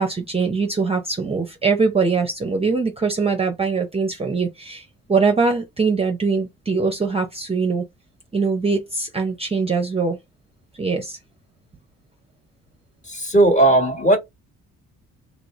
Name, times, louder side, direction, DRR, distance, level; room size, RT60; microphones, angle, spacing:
voice 1, 0.0-7.8 8.3-10.2 10.8-11.2, right 4 dB, 20° right, 0.6 m, -22 dB
voice 2, 13.0-14.2, right 2 dB, 25° left, 1.3 m, -16 dB
3.1 x 2.5 x 3.1 m
cardioid pair, 90°, 30 cm